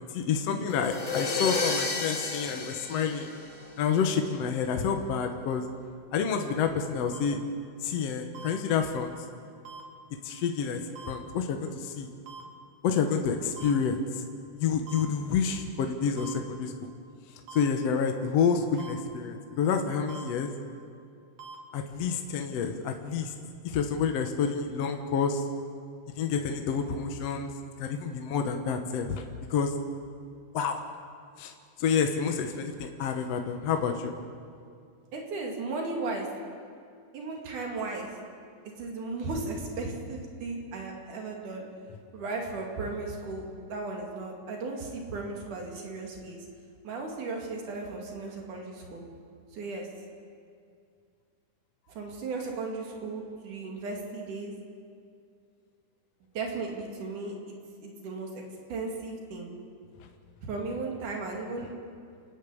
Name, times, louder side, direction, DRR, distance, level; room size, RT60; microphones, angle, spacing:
voice 1, 0.1-3.3 3.8-5.6 6.1-7.4 7.8-9.1 10.2-10.8 11.1-12.1 12.8-14.2 14.5-16.7 17.5-20.5 21.7-23.3 23.6-25.4 26.2-27.5 27.8-29.2 29.5-29.7 30.5-30.8 31.4-31.5 31.8-34.1, left 6 dB, 65° left, 5 dB, 2.0 m, -28 dB
sound 1, 0.7-4.0, left 4 dB, 35° left, 1.2 m, -32 dB
sound 2, 7.1-7.2 8.3-8.5 9.6-9.8 11.0-11.1 12.3-12.4 13.6-13.7 14.9-15.0 16.2-16.3 17.5-17.6 18.8-18.9 20.1-20.2 21.4-21.6, right 5 dB, 50° right, 3.4 m, -43 dB
voice 2, 35.1-36.3 37.1-38.2 38.8-41.7 42.1-46.5 46.8-49.1 49.5-49.9 51.9-54.5 56.4-57.6 57.8-58.4 58.7-59.5 60.4-61.7, right 3 dB, 80° right, 1 dB, 3.9 m, -36 dB
30.0 x 10.5 x 8.4 m, 2.3 s
omnidirectional pair, 3.5 m